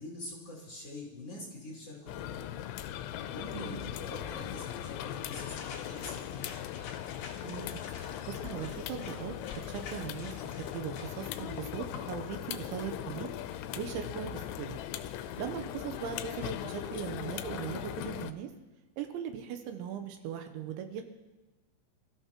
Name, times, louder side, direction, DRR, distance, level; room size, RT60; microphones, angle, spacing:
voice 1, 0.0-2.6 3.2-6.3 13.8-14.1, left 2 dB, 40° left, -4 dB, 2.9 m, -45 dB
sound 1, 2.1-18.3, left 11 dB, 80° left, 3.0 m, -39 dB
voice 2, 3.5-3.9 7.4-9.4 9.7-14.8 15.4-18.5 19.0-21.0, right 8 dB, 80° right, 7 dB, 3.1 m, -39 dB
sound 2, 4.7-12.2, left 5 dB, 60° left, 2.1 m, -49 dB
26.0 x 14.0 x 3.0 m, 1.2 s
omnidirectional pair, 5.6 m